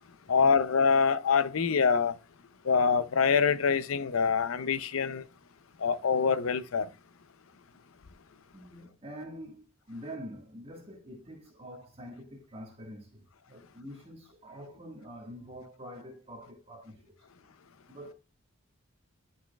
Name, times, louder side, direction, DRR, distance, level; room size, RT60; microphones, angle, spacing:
voice 1, 0.3-2.2 2.6-5.2 5.8-6.9, left 5 dB, 90° left, 0.6 m, -25 dB
voice 2, 8.5-17.5 17.9-18.1, equal, 30° right, 1.7 m, -46 dB
10.5 x 6.2 x 2.3 m
head